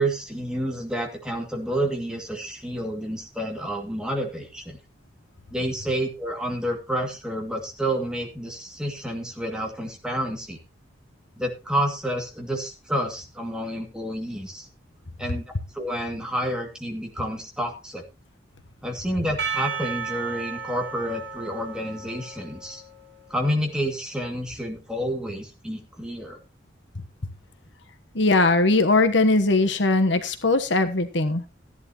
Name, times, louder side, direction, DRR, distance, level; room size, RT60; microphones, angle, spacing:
voice 1, 0.0-4.8 5.5-10.6 11.4-14.7 15.2-15.4 15.7-18.0 18.8-22.8 23.3-26.4, right 1 dB, 5° right, 1 dB, 2.4 m, -29 dB
Percussion, 19.4-23.3, right 6 dB, 65° right, 5.8 m, -34 dB
voice 2, 28.1-31.4, left 2 dB, 75° left, 8 dB, 1.2 m, -20 dB
15.0 x 10.5 x 3.0 m, 0.28 s
head